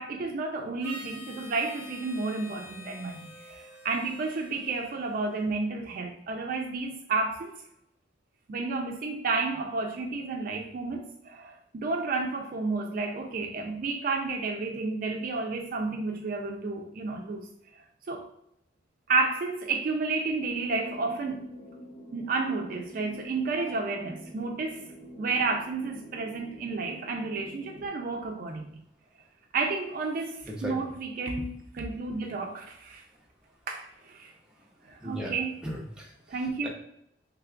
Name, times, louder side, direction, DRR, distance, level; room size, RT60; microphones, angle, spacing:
voice 1, 0.0-7.5 8.5-17.5 18.1-18.3 19.1-21.4 22.1-24.9 25.2-28.8 29.5-33.0 33.7-34.3 34.9-35.6 36.3-36.7, right 3 dB, 50° right, 2 dB, 0.4 m, -31 dB
Harmonica, 0.8-5.5, left 1 dB, 45° left, 1.3 m, -47 dB
sound 1, 20.5-27.9, equal, 70° left, 0.8 m, -47 dB
voice 2, 30.4-30.8 35.0-35.3 35.6-36.4 36.6-36.7, left 1 dB, 5° right, -3 dB, 0.7 m, -36 dB
3.2 x 2.3 x 3.6 m, 0.79 s
head